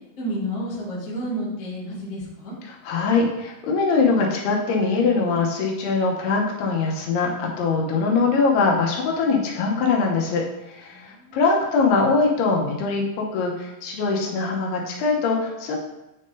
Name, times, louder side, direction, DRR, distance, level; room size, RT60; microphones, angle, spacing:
voice 1, 0.2-2.6 10.9-11.4, equal, 30° left, -8 dB, 1.5 m, -31 dB
voice 2, 2.7-10.4 10.7-13.5 13.8-15.8, left 4 dB, 85° left, -1 dB, 3.0 m, -22 dB
9.6 x 3.7 x 2.7 m, 0.95 s
omnidirectional pair, 4.5 m